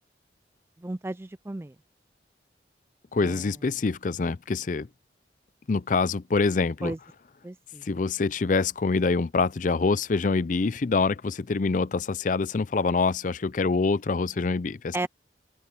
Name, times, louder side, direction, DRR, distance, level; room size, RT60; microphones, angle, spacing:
voice 1, 0.8-1.7 3.2-3.4 6.8-7.0 7.4-7.8 14.9-15.1, right 2 dB, 15° right, 0.4 m, -33 dB
voice 2, 3.1-4.9 5.7-6.9 7.8-15.1, left 4 dB, 45° left, 0.5 m, -25 dB
open air
head